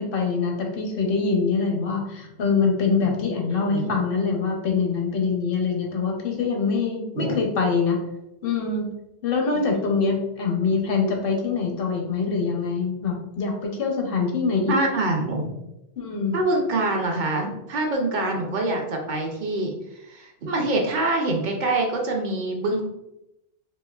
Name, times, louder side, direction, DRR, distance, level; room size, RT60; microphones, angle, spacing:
voice 1, 0.0-8.0 8.4-8.9 9.2-14.7 16.0-16.4, left 4 dB, 65° left, 2 dB, 0.8 m, -24 dB
voice 2, 3.6-4.0 7.1-7.4 9.7-9.9 14.7-15.5 16.3-19.7 20.1-22.8, right 2 dB, 55° right, 1 dB, 0.7 m, -25 dB
4.2 x 2.5 x 2.3 m, 0.89 s
omnidirectional pair, 1.0 m